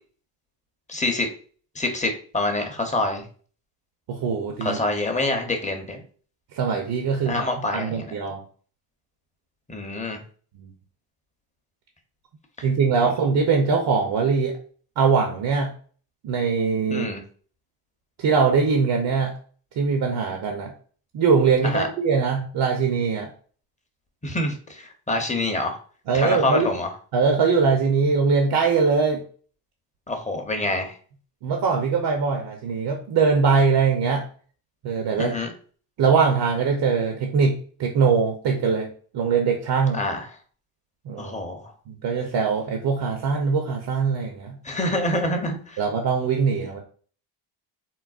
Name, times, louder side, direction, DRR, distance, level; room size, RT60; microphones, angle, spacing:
voice 1, 0.9-1.3 1.8-3.3 4.6-6.0 7.2-8.1 9.7-10.2 13.0-13.1 16.9-17.2 21.6-21.9 24.2-25.8 26.1-26.9 30.1-30.9 35.2-35.5 39.9-40.3 41.2-41.7 44.6-45.8, left 2 dB, 15° left, 4 dB, 0.6 m, -26 dB
voice 2, 4.1-4.8 6.5-7.4 7.7-8.4 10.5-10.7 12.6-14.5 15.0-15.7 16.2-17.1 18.2-19.3 19.8-20.7 21.1-23.3 26.1-26.7 27.1-29.2 31.4-34.2 34.8-35.4 36.0-40.0 41.1-41.4 41.9-44.6 45.8-46.8, right 5 dB, 55° right, 2 dB, 0.7 m, -22 dB
3.9 x 2.0 x 2.4 m, 0.44 s
supercardioid pair, 65°, 49 cm